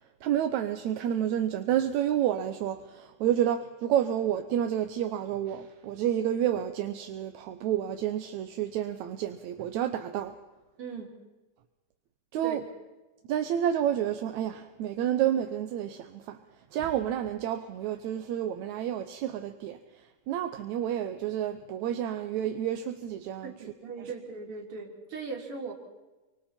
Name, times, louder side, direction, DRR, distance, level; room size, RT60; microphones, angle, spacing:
voice 1, 0.2-10.4 12.3-12.6 13.3-16.4 16.7-23.5 24.0-24.1, right 10 dB, 70° right, 2.0 m, -30 dB
voice 2, 10.8-11.1 12.4-12.6 23.4-25.7, right 4 dB, 40° right, 4.5 m, -39 dB
29.5 x 24.0 x 4.4 m
omnidirectional pair, 3.8 m